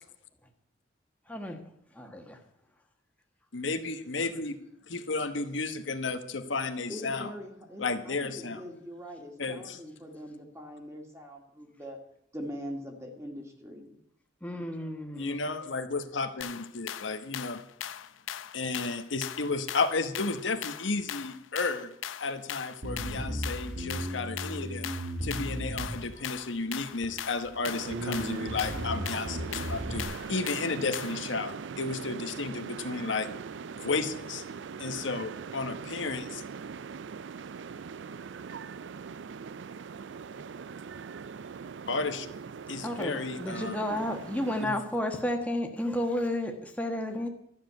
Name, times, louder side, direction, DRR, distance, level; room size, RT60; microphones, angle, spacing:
voice 1, 1.3-1.6 1.9-2.4 14.4-15.5 42.8-47.3, left 1 dB, 5° left, 3 dB, 1.4 m, -32 dB
voice 2, 3.5-4.6 4.9-7.3 7.8-8.6 9.4-9.8 15.2-17.6 18.5-21.9 22.2-24.9 25.2-33.3 33.7-34.4 34.8-36.4 41.9-42.3 42.7-44.0 44.6-44.8, left 3 dB, 75° left, 9 dB, 1.1 m, -33 dB
voice 3, 6.9-12.0 12.3-13.9 43.9-44.1, equal, 15° right, 2 dB, 2.1 m, -42 dB
sound 1, 16.4-31.3, left 10 dB, 90° left, 0.6 m, -40 dB
Bass guitar, 22.8-26.4 27.0-27.6 27.9-30.0, right 1 dB, 50° right, 1.5 m, -36 dB
sound 2, 27.6-44.7, right 6 dB, 70° right, 0.4 m, -41 dB
12.5 x 7.5 x 9.3 m, 0.72 s
head